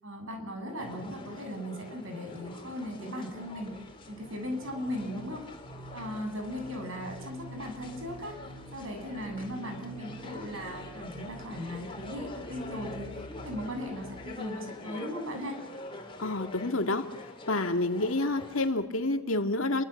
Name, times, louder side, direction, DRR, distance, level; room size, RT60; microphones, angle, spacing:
voice 1, 0.0-3.8 4.1-5.4 5.9-8.4 8.7-13.1 13.4-15.6, equal, 65° right, 5 dB, 7.9 m, -38 dB
sound 1, 0.8-18.7, left 2 dB, 25° left, 4.3 m, -45 dB
sound 2, 3.4-14.4, right 1 dB, 85° right, 6.8 m, -48 dB
voice 2, 16.2-17.0 17.5-19.8, left 2 dB, 65° left, 6 dB, 2.2 m, -28 dB
29.5 x 24.5 x 7.2 m, 0.82 s
head